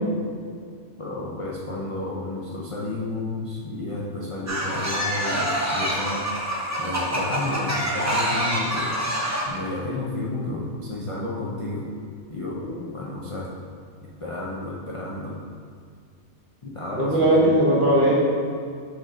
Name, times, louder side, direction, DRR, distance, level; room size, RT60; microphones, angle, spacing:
voice 1, 1.0-6.2 6.8-8.9 9.4-11.9 12.3-12.6 12.9-13.5 14.2-15.4 16.6-17.4, left 2 dB, 55° left, -5 dB, 0.3 m, -31 dB
sound 1, 4.5-9.5, equal, 20° right, 0.4 m, -26 dB
voice 2, 17.0-18.1, right 1 dB, 40° right, -5 dB, 1.2 m, -19 dB
6.1 x 4.3 x 3.8 m, 2.1 s
omnidirectional pair, 1.5 m